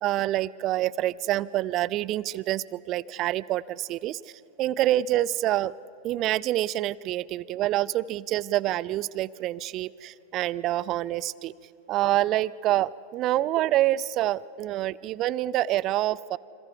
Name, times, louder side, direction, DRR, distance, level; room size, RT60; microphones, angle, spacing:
voice 1, 0.0-4.2 4.6-5.7 6.0-11.5 11.9-16.4, right 14 dB, 35° right, 22 dB, 0.4 m, -27 dB
28.5 x 26.5 x 5.5 m, 2.8 s
figure-of-eight pair, 90°, 0 cm